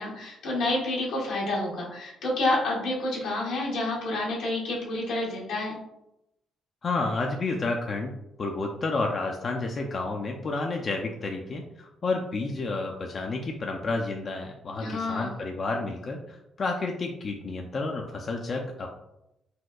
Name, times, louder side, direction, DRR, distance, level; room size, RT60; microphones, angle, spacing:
voice 1, 0.0-5.7 14.8-15.3, left 2 dB, 90° left, -4 dB, 1.3 m, -29 dB
voice 2, 6.8-8.1 8.4-18.9, left 3 dB, 45° left, 2 dB, 0.4 m, -30 dB
4.2 x 2.3 x 2.2 m, 0.86 s
cardioid pair, 90°, 0 cm